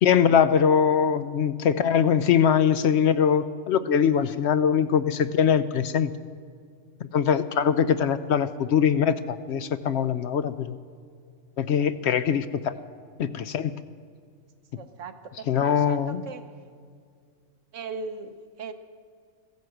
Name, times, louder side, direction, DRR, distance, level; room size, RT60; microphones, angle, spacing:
voice 1, 0.0-6.1 7.1-10.8 11.6-12.8 13.2-13.7 15.5-16.2, left 8 dB, 65° left, 12 dB, 0.8 m, -22 dB
voice 2, 14.8-16.5 17.7-18.7, right 4 dB, 75° right, 8 dB, 1.3 m, -39 dB
15.0 x 10.5 x 7.8 m, 2.2 s
omnidirectional pair, 1.3 m